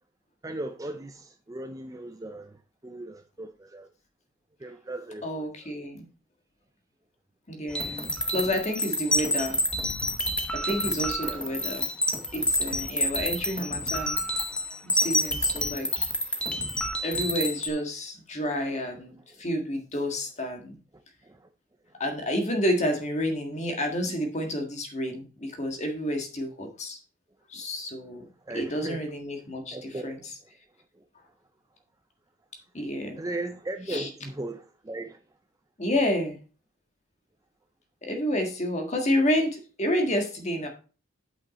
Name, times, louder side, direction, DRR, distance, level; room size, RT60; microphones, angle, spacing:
voice 1, 0.4-3.9 4.6-5.5 11.2-11.4 21.2-21.4 28.5-29.0 29.7-30.2 33.2-35.2, right 2 dB, 15° right, 0.4 m, -37 dB
voice 2, 5.2-6.1 7.5-9.6 10.5-11.9 12.3-14.2 14.8-16.1 17.0-20.8 22.0-27.0 27.5-28.2 28.5-30.3 32.7-33.2 33.9-34.1 35.8-36.4 38.0-40.7, equal, 30° left, 1.7 m, -30 dB
sound 1, 7.7-17.7, left 1 dB, 5° left, 0.9 m, -28 dB
8.1 x 5.7 x 4.1 m
head